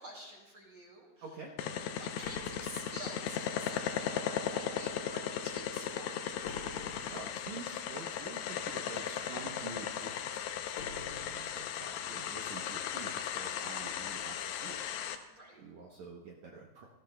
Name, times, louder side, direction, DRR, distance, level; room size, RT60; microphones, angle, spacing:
voice 1, 0.0-1.2 2.0-6.3 11.1-11.4 15.3-15.6, right 1 dB, 35° right, -3 dB, 2.6 m, -49 dB
voice 2, 1.2-1.5 6.5-10.7 11.2-14.8 15.6-16.9, right 4 dB, 80° right, -1 dB, 1.6 m, -48 dB
sound 1, 1.6-15.2, left 9 dB, 85° left, 2.8 m, -37 dB
sound 2, 2.2-3.6 6.4-7.6 10.7-12.1, left 3 dB, 70° left, 2.5 m, -48 dB
20.0 x 13.0 x 2.2 m, 1.1 s
omnidirectional pair, 4.6 m